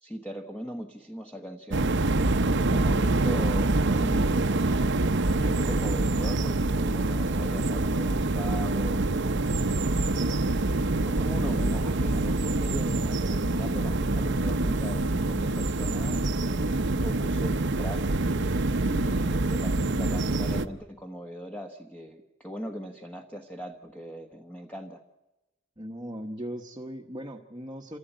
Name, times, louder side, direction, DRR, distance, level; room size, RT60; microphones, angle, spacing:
voice 1, 0.0-1.9 2.5-4.5 5.3-9.5 10.7-18.1 18.8-25.0, equal, 5° left, 4 dB, 1.2 m, -39 dB
sound 1, 1.7-20.7, right 2 dB, 60° right, 0.9 m, -25 dB
voice 2, 25.8-28.0, equal, 20° right, 2 dB, 1.1 m, -38 dB
27.0 x 16.0 x 9.0 m, 1.1 s
head